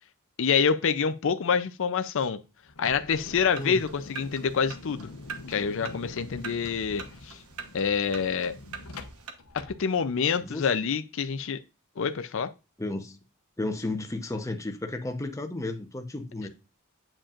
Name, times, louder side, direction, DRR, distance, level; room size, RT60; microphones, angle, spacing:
voice 1, 0.4-2.4 2.8-5.1 5.5-7.4 7.7-8.5 9.5-11.6 12.0-12.5 16.4-16.5, left 6 dB, 60° left, 0.5 m, -27 dB
sound 1, 2.7-10.5, left 2 dB, 80° left, 1.0 m, -45 dB
sound 2, 3.5-9.3, right 5 dB, 85° right, 1.1 m, -44 dB
voice 2, 12.8-13.2 13.6-16.5, left 2 dB, 15° left, 0.8 m, -33 dB
8.6 x 5.1 x 2.5 m
head